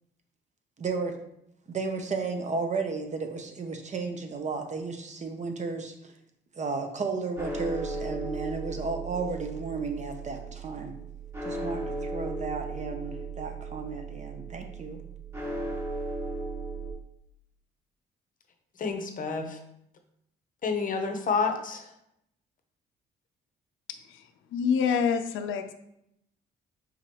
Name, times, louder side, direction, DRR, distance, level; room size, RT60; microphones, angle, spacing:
voice 1, 0.8-1.1 1.7-5.9 6.6-10.9 11.4-15.0, right 4 dB, 35° right, 5 dB, 0.7 m, -33 dB
sound 1, 7.4-16.9, right 2 dB, 15° right, 1.2 m, -36 dB
voice 2, 18.8-19.6 20.6-21.9, left 5 dB, 45° left, 5 dB, 0.8 m, -29 dB
voice 3, 24.5-25.7, left 6 dB, 85° left, 8 dB, 0.5 m, -26 dB
3.7 x 3.0 x 4.6 m, 0.79 s
cardioid pair, 90°, 20 cm